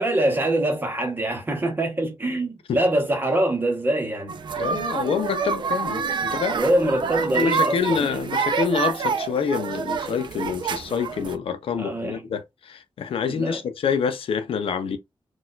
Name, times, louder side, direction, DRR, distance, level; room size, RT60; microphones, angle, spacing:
voice 1, 0.0-4.4 6.5-8.2 11.8-12.2 13.3-13.6, right 1 dB, 20° right, 0.9 m, -24 dB
sound 1, 4.3-11.4, right 6 dB, 55° right, 0.4 m, -27 dB
voice 2, 4.6-6.6 7.3-15.0, left 6 dB, 85° left, 0.5 m, -26 dB
4.3 x 2.3 x 2.2 m
wide cardioid pair, 170°, 9 cm